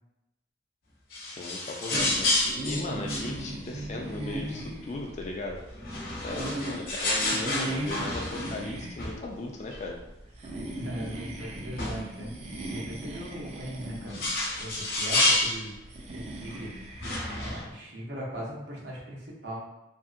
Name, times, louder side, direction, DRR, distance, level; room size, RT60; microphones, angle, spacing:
sound 1, 1.1-4.6 5.7-8.7 9.0-9.2 9.7-9.8 10.5-10.6 11.0-11.1 11.8-12.0 13.6-15.7 16.5-16.6 16.9-17.6, left 2 dB, 55° left, 0.8 m, -30 dB
voice 1, 1.3-2.3 2.6-5.6 6.2-10.0, left 2 dB, 40° left, 0 dB, 0.3 m, -37 dB
sound 2, 1.9-17.7, right 1 dB, 35° right, 0.4 m, -38 dB
voice 2, 10.7-12.3 12.6-14.2 14.6-15.8 16.1-16.8 17.4-19.6, equal, 65° right, -4 dB, 0.8 m, -39 dB
2.8 x 2.7 x 2.4 m, 0.93 s
head